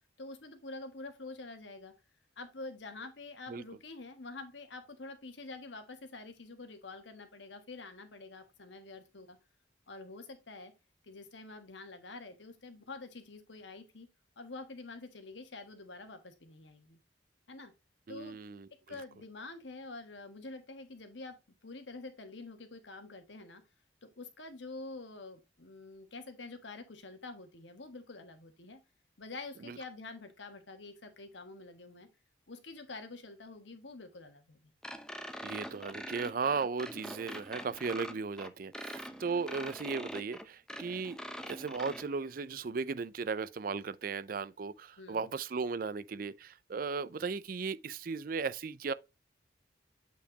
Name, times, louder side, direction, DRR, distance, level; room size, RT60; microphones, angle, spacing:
voice 1, 0.2-1.9 2.4-9.4 9.9-10.7 11.0-14.1 14.4-17.0 17.5-17.7 18.1-18.4 18.9-21.4 21.6-23.6 24.0-28.8 29.2-32.1 32.5-34.7 45.0-45.3, left 3 dB, 85° left, 1.4 m, -47 dB
voice 2, 18.1-18.7 29.7-29.8 35.4-48.9, right 5 dB, 50° right, 0.4 m, -36 dB
sound 1, 34.8-42.0, equal, 5° left, 0.6 m, -44 dB
8.3 x 4.3 x 2.9 m
head